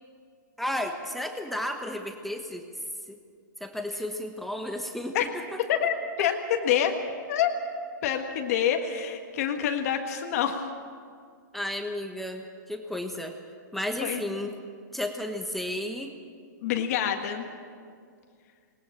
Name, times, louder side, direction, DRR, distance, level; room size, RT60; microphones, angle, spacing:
voice 1, 0.6-2.6 3.1-3.2 3.6-5.6 6.2-6.3 11.5-13.4 13.7-14.6 14.9-16.1, left 1 dB, ahead, 4 dB, 1.2 m, -33 dB
voice 2, 5.7-6.9 7.3-7.6 8.0-10.6 14.0-14.2 16.6-17.4, left 9 dB, 50° left, 4 dB, 1.7 m, -27 dB
20.0 x 19.5 x 7.4 m, 2.2 s
hypercardioid pair, 145°, 10 cm